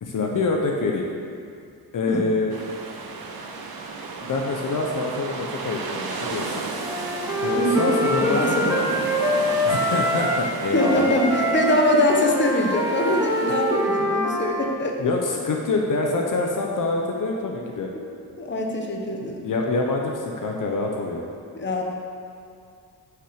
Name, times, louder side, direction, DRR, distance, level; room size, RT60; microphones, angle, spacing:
voice 1, 0.0-1.1 1.9-2.6 4.2-6.6 7.4-8.8 9.6-11.1 15.0-17.9 19.4-21.3, left 3 dB, 55° left, 0 dB, 0.9 m, -26 dB
sound 1, 2.5-14.0, right 4 dB, 65° right, 1.1 m, -34 dB
Wind instrument woodwind instrument, 6.8-10.5 10.7-14.7, equal, 10° right, 0.9 m, -24 dB
voice 2, 7.5-8.9 10.7-14.9 18.4-19.4 21.5-21.8, left 1 dB, 30° left, 1 dB, 1.1 m, -23 dB
9.5 x 5.9 x 6.5 m, 2.3 s
wide cardioid pair, 165°, 39 cm